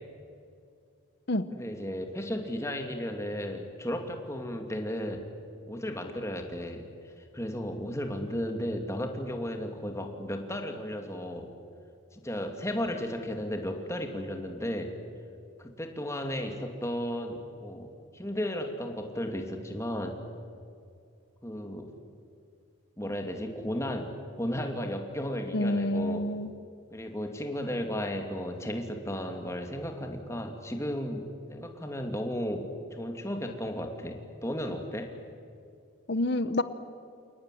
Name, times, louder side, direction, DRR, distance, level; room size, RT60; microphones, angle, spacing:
voice 1, 1.5-5.2 5.7-6.9 7.2-11.5 12.1-14.9 15.6-20.2 21.4-21.9 23.0-24.1 24.4-26.3 26.9-35.1, equal, 15° left, 4 dB, 2.5 m, -34 dB
voice 2, 25.5-26.5 36.1-36.6, left 1 dB, 55° left, 13 dB, 0.9 m, -27 dB
29.0 x 18.5 x 10.0 m, 2.4 s
head